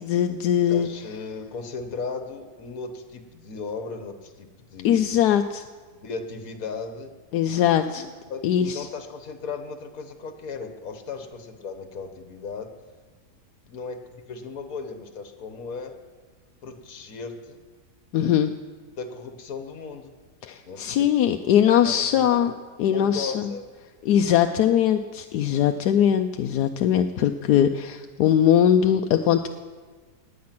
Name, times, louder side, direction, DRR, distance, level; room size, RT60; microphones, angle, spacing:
voice 1, 0.0-0.9 4.8-5.6 7.3-8.1 8.4-8.9 18.1-18.5 20.4-22.5 22.8-23.5 24.0-29.5, left 10 dB, 85° left, 6 dB, 1.2 m, -21 dB
voice 2, 0.7-5.2 6.0-7.1 7.9-12.7 13.7-16.0 16.6-17.6 18.9-20.1 20.7-21.3 21.6-22.4 22.9-23.6, left 4 dB, 60° left, 7 dB, 1.7 m, -36 dB
18.0 x 9.4 x 6.0 m, 1.4 s
omnidirectional pair, 1.7 m